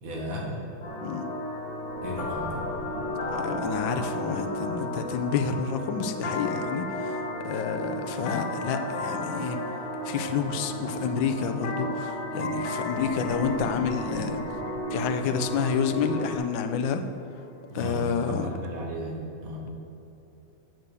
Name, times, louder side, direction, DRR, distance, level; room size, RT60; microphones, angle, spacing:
voice 1, 0.0-0.6 2.0-2.6 17.7-19.7, equal, 90° right, -2 dB, 2.3 m, -35 dB
sound 1, 0.8-16.5, left 2 dB, 45° left, 1.1 m, -38 dB
sound 2, 0.8-16.4, right 1 dB, 20° left, 2.2 m, -35 dB
voice 2, 3.3-7.2 7.4-9.6 10.0-14.4 14.9-17.0 17.7-18.5, left 6 dB, 80° left, 8 dB, 1.3 m, -29 dB
7.7 x 5.9 x 6.8 m, 2.9 s
omnidirectional pair, 2.1 m